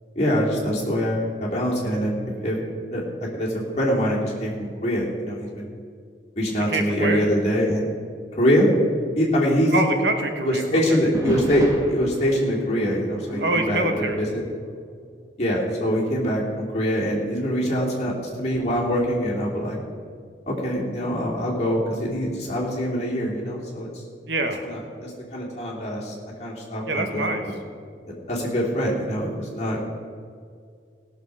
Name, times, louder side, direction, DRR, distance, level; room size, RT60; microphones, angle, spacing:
voice 1, 0.1-2.2 2.4-2.6 2.9-3.0 3.3-5.7 6.4-7.8 8.3-8.7 9.2-9.7 10.4-14.4 15.4-19.8 20.5-24.0 24.6-26.1 26.4-27.3 28.3-29.8, equal, 35° left, -4 dB, 2.8 m, -24 dB
voice 2, 6.7-7.3 9.7-11.0 13.4-14.2 24.3-24.6 26.9-27.4, right 2 dB, 75° right, 6 dB, 1.2 m, -25 dB
sound 1, 11.1-15.3 15.6-16.0 16.6-16.7 17.4-20.1 22.0-22.5, equal, 15° right, 1.6 m, -34 dB
17.0 x 6.5 x 6.3 m, 2.1 s
head